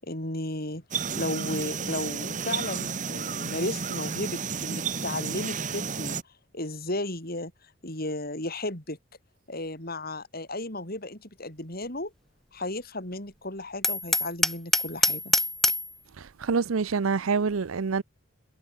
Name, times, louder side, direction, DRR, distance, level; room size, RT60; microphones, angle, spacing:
voice 1, 0.0-0.8 1.1-6.2 6.5-7.5 7.8-9.0 9.5-12.1 12.5-15.3, left 1 dB, 45° left, 6.2 m, -34 dB
sound 1, 0.9-6.2, right 6 dB, 40° right, 1.5 m, -32 dB
Hammer, 13.8-15.9, left 1 dB, ahead, 1.5 m, -24 dB
voice 2, 16.4-18.0, right 5 dB, 80° right, 0.6 m, -26 dB
head